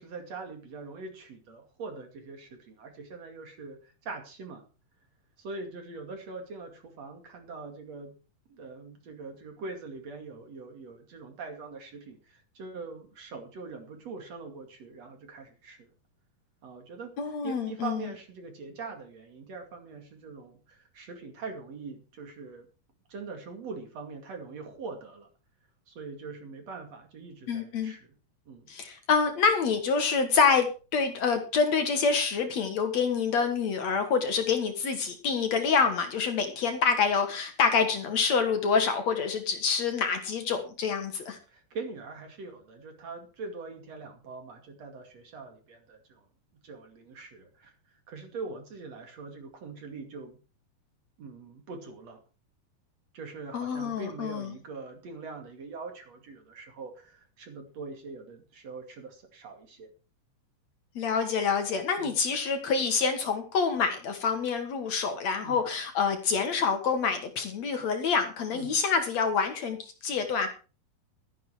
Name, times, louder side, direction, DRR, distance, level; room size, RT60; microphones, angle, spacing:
voice 1, 0.0-4.6 5.4-8.1 8.5-15.9 16.6-17.1 17.4-22.7 23.1-25.3 25.9-28.1 28.5-28.7 41.5-46.3 46.6-50.4 51.2-52.2 53.1-59.9 62.0-62.1 65.4-65.6 68.5-68.7, right 4 dB, 50° right, 5 dB, 3.3 m, -42 dB
voice 2, 17.2-18.1 27.5-27.9 28.7-30.7 30.9-41.4 53.5-54.5 61.0-70.5, left 5 dB, 55° left, 7 dB, 2.6 m, -27 dB
13.0 x 10.0 x 4.9 m, 0.35 s
omnidirectional pair, 4.0 m